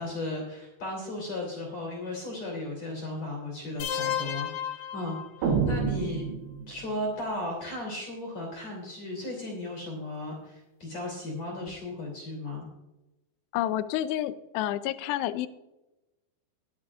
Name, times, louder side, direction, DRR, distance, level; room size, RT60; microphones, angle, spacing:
voice 1, 0.0-6.3 6.7-12.7, left 1 dB, 40° left, -2 dB, 3.8 m, -36 dB
sound 1, 3.8-5.8, left 9 dB, 65° left, 1.9 m, -33 dB
sound 2, 5.4-7.0, right 5 dB, 85° right, 3.4 m, -28 dB
voice 2, 13.5-15.5, left 13 dB, 85° left, 13 dB, 2.7 m, -29 dB
21.5 x 8.3 x 2.5 m, 0.99 s
omnidirectional pair, 4.8 m